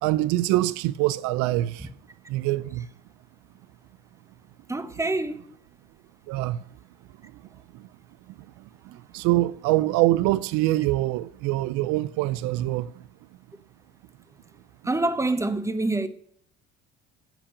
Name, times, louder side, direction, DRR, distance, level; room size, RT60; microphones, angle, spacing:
voice 1, 0.0-1.9 2.3-2.9 6.3-6.6 7.2-7.3 7.7-7.9 8.6-13.0, right 16 dB, 75° right, 0.5 m, -25 dB
voice 2, 4.7-5.4 14.8-16.1, right 2 dB, 10° right, 1.0 m, -26 dB
10.0 x 6.0 x 6.7 m
supercardioid pair, 85°, 30 cm